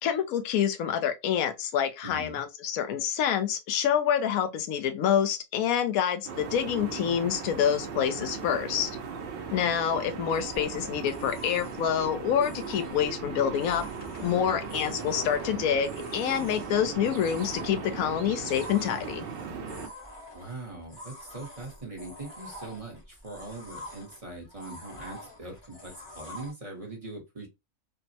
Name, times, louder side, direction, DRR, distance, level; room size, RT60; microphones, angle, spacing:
voice 1, 0.0-8.9 9.5-13.9 14.2-19.3, left 9 dB, 75° left, 1.0 m, -27 dB
voice 2, 2.0-2.4 14.2-14.6 20.3-27.5, right 2 dB, 30° right, 0.8 m, -41 dB
sound 1, 6.3-19.9, right 5 dB, 65° right, 0.5 m, -38 dB
sound 2, 10.3-26.5, left 1 dB, 25° left, 0.6 m, -47 dB
sound 3, 12.1-12.6 13.8-16.0 17.5-19.0, left 2 dB, 45° left, 1.1 m, -49 dB
3.3 x 2.0 x 2.6 m
omnidirectional pair, 1.6 m